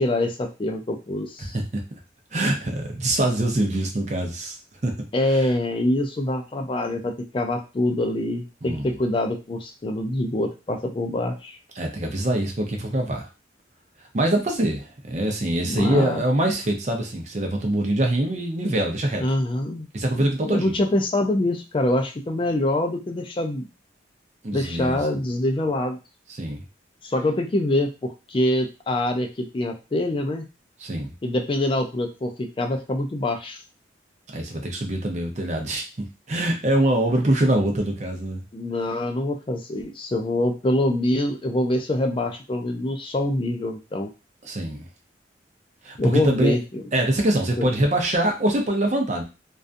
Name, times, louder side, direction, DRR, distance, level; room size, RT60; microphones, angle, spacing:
voice 1, 0.0-1.6 5.1-11.6 15.6-16.2 19.2-19.9 20.2-23.7 24.5-26.0 27.0-30.4 31.2-33.6 38.5-44.1 46.0-46.8 47.6-47.7, left 1 dB, 30° left, 4 dB, 0.4 m, -25 dB
voice 2, 2.3-4.6 4.8-5.5 8.6-9.0 11.8-13.3 14.1-19.2 19.9-20.8 24.4-25.0 26.4-26.6 30.8-31.1 34.3-35.8 36.3-38.4 44.4-44.9 45.8-46.5 46.9-49.2, right 1 dB, 40° right, 2 dB, 0.6 m, -24 dB
2.5 x 2.3 x 2.5 m, 0.29 s
head